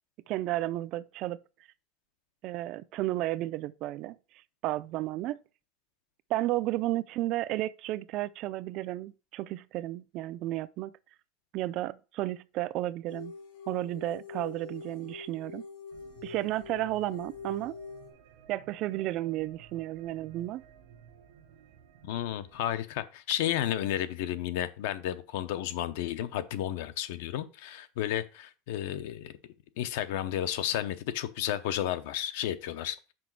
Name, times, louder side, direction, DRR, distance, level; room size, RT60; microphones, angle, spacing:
voice 1, 0.3-1.4 2.4-4.2 4.6-5.4 6.3-10.9 11.5-13.3 13.7-15.6 16.2-17.8 18.5-20.6, right 15 dB, 40° right, 0.3 m, -33 dB
sound 1, 13.1-18.1, left 5 dB, 80° left, 2.1 m, -45 dB
sound 2, 15.9-22.8, right 8 dB, 75° right, 1.1 m, -55 dB
voice 2, 22.0-29.3 29.8-33.0, left 11 dB, 65° left, 0.7 m, -32 dB
6.1 x 4.9 x 4.6 m
supercardioid pair, 165°, 0 cm